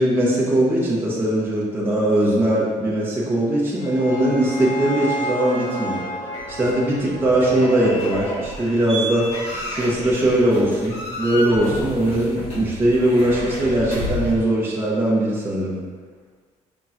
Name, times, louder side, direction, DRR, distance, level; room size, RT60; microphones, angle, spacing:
voice 1, 0.0-9.3 9.7-15.7, right 1 dB, 15° right, -7 dB, 1.0 m, -20 dB
sound 1, 3.4-8.6, equal, 80° left, 1.1 m, -32 dB
sound 2, 6.3-14.4, equal, 55° left, 1.3 m, -31 dB
5.6 x 2.8 x 2.5 m, 1.5 s
cardioid pair, 165°, 13 cm